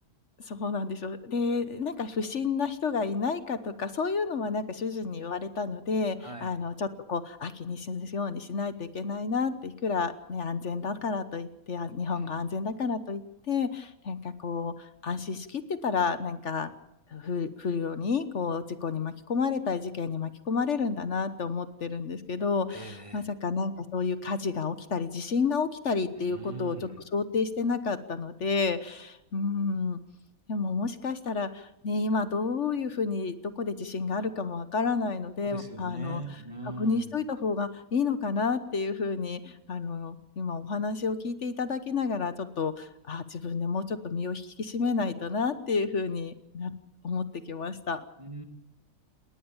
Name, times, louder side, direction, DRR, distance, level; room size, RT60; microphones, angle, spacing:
voice 1, 0.4-16.7 17.1-30.0 30.5-46.7 47.0-48.0, left 4 dB, 60° left, 12 dB, 1.4 m, -30 dB
voice 2, 6.2-6.5 12.1-12.4 22.7-23.3 26.2-27.0 35.4-37.1 48.2-48.4, right 3 dB, 20° right, 7 dB, 1.9 m, -41 dB
20.0 x 19.5 x 7.2 m, 0.83 s
omnidirectional pair, 1.5 m